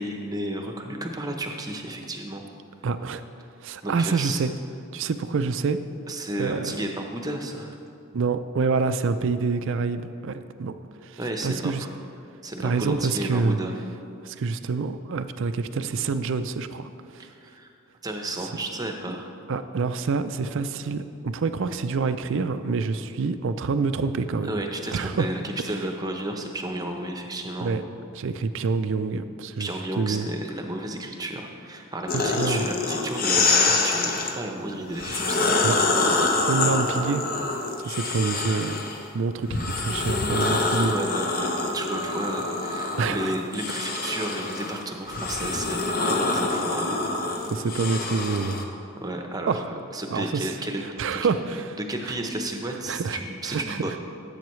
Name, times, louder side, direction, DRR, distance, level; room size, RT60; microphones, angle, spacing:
voice 1, 0.0-2.4 3.8-4.4 6.1-7.8 11.2-11.9 12.4-13.7 17.2-17.7 18.0-19.3 24.4-27.7 29.6-35.9 40.4-47.0 49.0-50.8 51.2-51.3 51.8-54.0, right 1 dB, 15° right, 3 dB, 0.8 m, -32 dB
voice 2, 2.8-3.2 3.6-4.5 4.9-5.8 6.4-6.8 8.1-10.7 11.0-11.8 12.6-13.6 14.2-17.3 19.5-24.6 24.9-25.3 27.6-27.8 28.1-30.3 32.1-32.7 35.6-35.8 36.5-37.3 37.8-38.8 39.1-40.9 43.0-43.3 47.5-48.6 49.5-49.6 50.1-50.5 51.0-51.8 52.0-52.1 52.9-53.2 53.5-53.8, right 4 dB, 55° right, 11 dB, 0.4 m, -27 dB
sound 1, 32.1-34.3 34.9-39.0 39.5-48.6, left 3 dB, 40° left, 0.8 m, -26 dB
15.5 x 7.8 x 3.2 m, 2.6 s
head